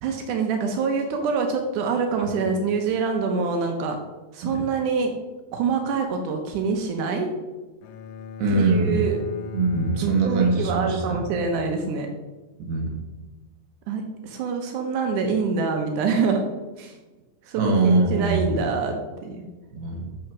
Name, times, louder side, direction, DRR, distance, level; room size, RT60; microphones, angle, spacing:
voice 1, 0.0-4.0 4.3-5.1 5.5-7.3 8.5-9.2 10.0-12.1 13.9-16.4 16.8-17.0 17.5-19.0 19.2-19.4, right 5 dB, 90° right, 3 dB, 1.7 m, -25 dB
Bowed string instrument, 7.8-11.9, left 5 dB, 85° left, 2.6 m, -39 dB
voice 2, 8.4-9.0 9.5-11.2 12.6-13.0 17.5-18.6 19.7-20.1, right 3 dB, 65° right, 1 dB, 1.9 m, -22 dB
6.4 x 5.6 x 6.0 m, 1.2 s
omnidirectional pair, 4.8 m